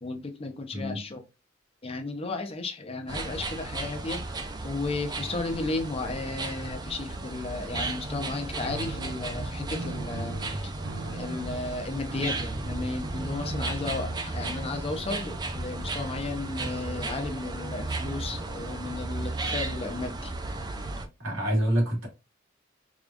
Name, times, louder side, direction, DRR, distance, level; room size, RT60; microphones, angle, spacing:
voice 1, 0.0-1.2 1.8-4.2 4.6-10.4 10.6-10.7 11.1-20.3, left 3 dB, 30° left, 0.6 m, -34 dB
sound 1, 3.1-21.1, right 2 dB, 20° right, 0.4 m, -34 dB
sound 2, 8.6-15.1, right 3 dB, 55° right, 0.7 m, -43 dB
voice 2, 21.2-22.1, equal, 80° right, 1.9 m, -26 dB
4.8 x 2.3 x 2.4 m
head